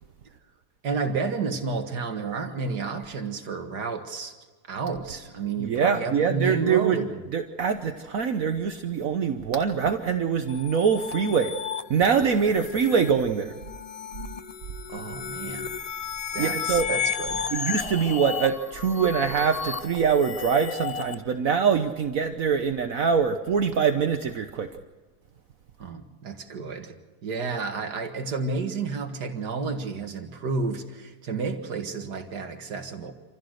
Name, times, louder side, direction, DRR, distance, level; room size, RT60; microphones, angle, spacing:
voice 1, 0.8-4.4 4.7-7.2 14.9-15.7 16.3-17.5 25.8-26.9 27.2-33.1, right 4 dB, 85° right, 5 dB, 2.2 m, -31 dB
voice 2, 5.6-7.0 7.3-11.5 11.9-13.5 16.4-16.9 17.5-24.7, right 6 dB, 60° right, 6 dB, 1.4 m, -24 dB
sound 1, 10.5-21.1, left 6 dB, 55° left, 0.4 m, -33 dB
27.0 x 16.0 x 6.5 m, 1.4 s
omnidirectional pair, 1.7 m